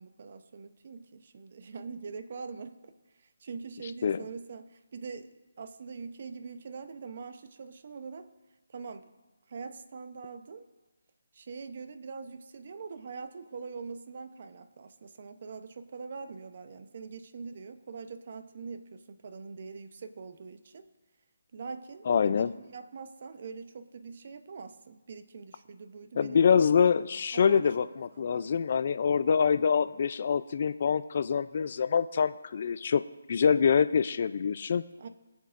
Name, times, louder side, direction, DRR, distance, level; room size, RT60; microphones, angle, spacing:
voice 1, 0.0-2.8 3.4-5.3 5.6-8.3 8.7-9.1 9.5-10.6 11.3-20.8 21.5-26.6 27.3-28.5 35.0-35.1, right 5 dB, 50° right, 10 dB, 0.8 m, -43 dB
voice 2, 22.1-22.5 26.2-33.0 33.3-34.8, left 6 dB, 45° left, 12 dB, 0.4 m, -25 dB
20.5 x 7.2 x 2.5 m, 1.1 s
hypercardioid pair, 160°, 0 cm